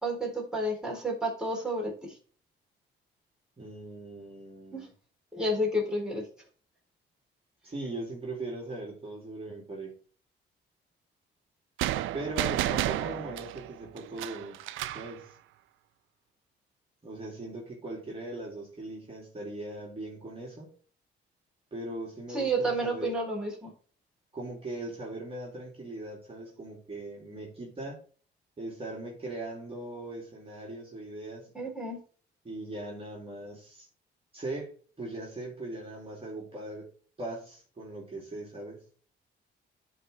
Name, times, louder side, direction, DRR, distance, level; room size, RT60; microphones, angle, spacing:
voice 1, 0.0-2.1 4.7-4.9 5.3-6.2 22.3-23.7 31.5-32.0, right 1 dB, 5° right, -2 dB, 3.4 m, -30 dB
voice 2, 3.6-4.9 7.6-9.9 12.1-14.6 14.9-15.4 17.0-20.7 21.7-23.1 24.3-28.0 28.6-31.5 32.4-33.9 34.3-36.9 37.2-38.8, right 2 dB, 30° right, -3 dB, 2.6 m, -39 dB
sound 1, 11.8-15.1, right 14 dB, 85° right, 0.5 m, -32 dB
11.5 x 4.0 x 3.3 m, 0.42 s
cardioid pair, 90°, 20 cm